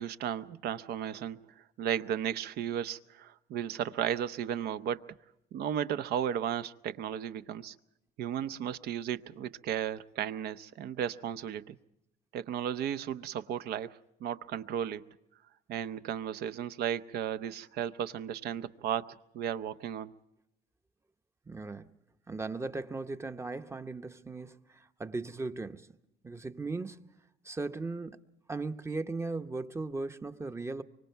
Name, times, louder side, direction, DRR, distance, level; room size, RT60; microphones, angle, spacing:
voice 1, 0.0-5.0 5.5-7.7 8.2-11.8 12.3-15.0 15.7-20.1, right 9 dB, 70° right, 0.8 m, -35 dB
voice 2, 21.5-21.9 22.3-26.0 26.2-27.1 27.4-28.2 28.5-30.8, right 3 dB, 15° right, 0.8 m, -37 dB
25.0 x 24.5 x 4.5 m
cardioid pair, 110°, 17 cm